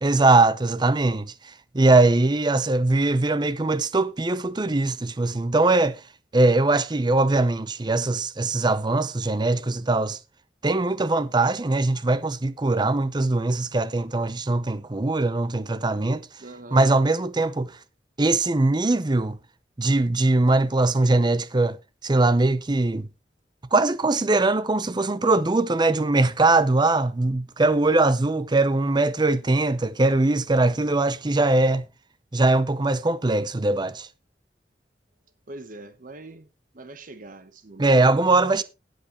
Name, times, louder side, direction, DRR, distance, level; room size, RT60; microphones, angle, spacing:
voice 1, 0.0-6.0 6.3-10.2 10.6-16.3 16.7-17.8 18.2-19.4 19.8-21.8 22.0-23.1 23.7-31.9 32.3-34.1 37.8-38.6, right 2 dB, 25° right, 0.6 m, -21 dB
voice 2, 16.4-16.8 35.5-36.5 36.7-38.6, right 2 dB, 50° right, 1.0 m, -43 dB
17.5 x 7.8 x 3.0 m
head